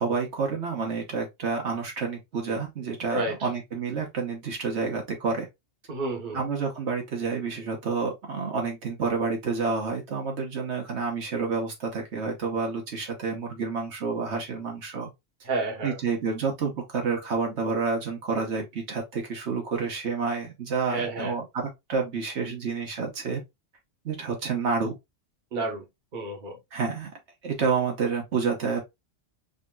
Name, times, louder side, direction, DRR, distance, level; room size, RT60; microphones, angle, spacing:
voice 1, 0.0-5.5 6.3-15.1 15.8-23.4 24.0-24.9 26.7-27.1 27.4-28.8, right 5 dB, 75° right, 1.4 m, -29 dB
voice 2, 5.9-6.4 15.4-16.0 20.9-21.3 25.5-25.8 26.1-26.6, right 2 dB, 45° right, 1.1 m, -30 dB
5.2 x 2.8 x 2.2 m
omnidirectional pair, 1.2 m